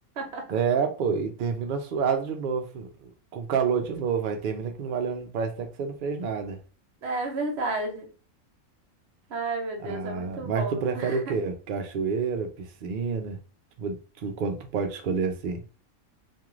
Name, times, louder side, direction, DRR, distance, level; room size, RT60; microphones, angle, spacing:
voice 1, 0.5-6.6 9.8-13.4 13.8-15.6, right 6 dB, 85° right, 0.4 m, -29 dB
voice 2, 7.0-8.1 9.3-11.3, right 2 dB, 55° right, 0.9 m, -32 dB
2.5 x 2.4 x 3.0 m
omnidirectional pair, 1.4 m